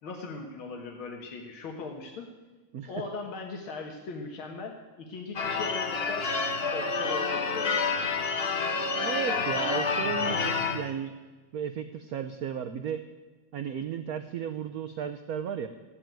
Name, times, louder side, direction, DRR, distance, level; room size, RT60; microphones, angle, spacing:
voice 1, 0.0-2.3 2.9-6.3 6.7-8.0, left 4 dB, 85° left, 2 dB, 2.3 m, -39 dB
Church bell / Car / Alarm, 5.3-10.9, left 4 dB, 40° left, 1.0 m, -28 dB
voice 2, 9.0-11.1 11.5-13.0 13.5-15.7, right 8 dB, 60° right, 8 dB, 1.0 m, -34 dB
15.5 x 9.9 x 9.0 m, 1.3 s
omnidirectional pair, 2.2 m